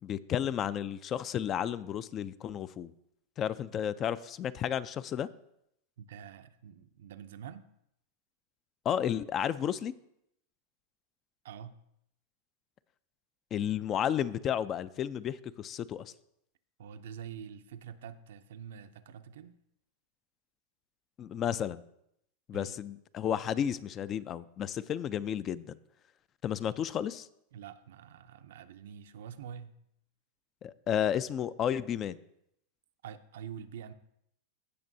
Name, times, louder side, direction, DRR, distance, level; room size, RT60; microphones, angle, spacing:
voice 1, 0.0-2.9 3.4-5.3 8.9-9.9 13.5-16.1 21.2-21.8 22.5-25.8 26.4-27.3 30.6-32.2, left 9 dB, 30° left, 0.3 m, -32 dB
voice 2, 6.0-7.7 11.4-11.8 16.8-19.6 22.5-22.7 27.5-29.8 33.0-33.9, right 8 dB, 80° right, 0.5 m, -46 dB
16.0 x 6.0 x 2.7 m
supercardioid pair, 145°, 0 cm